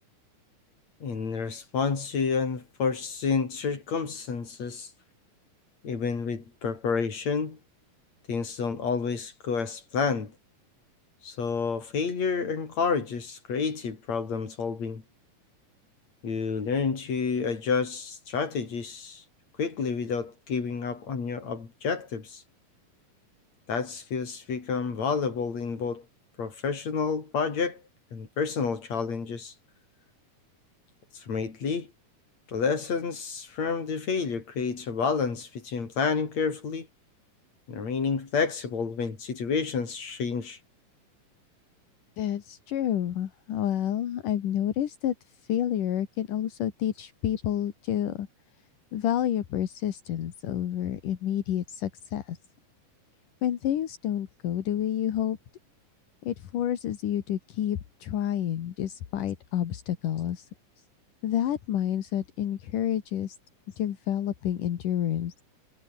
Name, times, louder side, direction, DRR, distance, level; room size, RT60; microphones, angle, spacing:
voice 1, 1.0-4.9 5.8-7.6 8.3-10.3 11.2-15.0 16.2-19.2 19.6-22.4 23.7-26.1 26.4-27.8 28.1-29.5 31.1-31.9 32.5-36.9 37.7-40.6, left 5 dB, 55° left, 5.5 m, -29 dB
voice 2, 42.2-45.1 45.4-48.3 48.9-52.4 53.4-55.4 56.2-60.5 61.2-63.4 63.8-65.4, left 11 dB, 75° left, 3.3 m, -29 dB
omnidirectional pair, 3.8 m